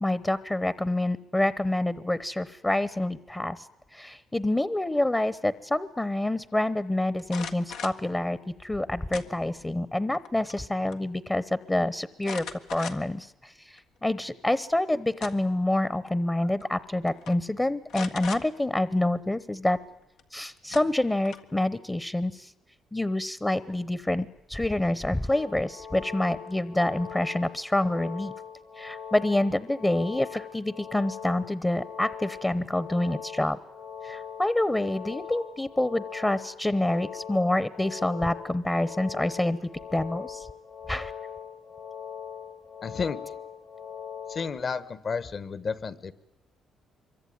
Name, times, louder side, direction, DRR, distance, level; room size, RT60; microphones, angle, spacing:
voice 1, 0.0-3.7 3.9-12.5 12.7-19.8 20.3-22.5 22.9-28.3 28.8-33.6 34.0-39.6 39.9-40.5 40.9-41.1, left 1 dB, 15° left, 16 dB, 0.9 m, -27 dB
sound 1, 7.2-8.0 9.1-9.7 10.1-10.7 10.9-11.0 12.2-13.2 13.8-13.9 14.9-15.6 16.6-16.8 17.1-17.3 17.9-18.4 20.2-20.3 20.7-21.6, left 6 dB, 90° left, 1.7 m, -39 dB
sound 2, 25.3-44.5, left 7 dB, 70° left, 3.9 m, -41 dB
voice 2, 42.8-43.2 44.3-46.1, left 5 dB, 45° left, 16 dB, 1.3 m, -31 dB
25.5 x 23.5 x 9.6 m, 0.89 s
cardioid pair, 90°, 0 cm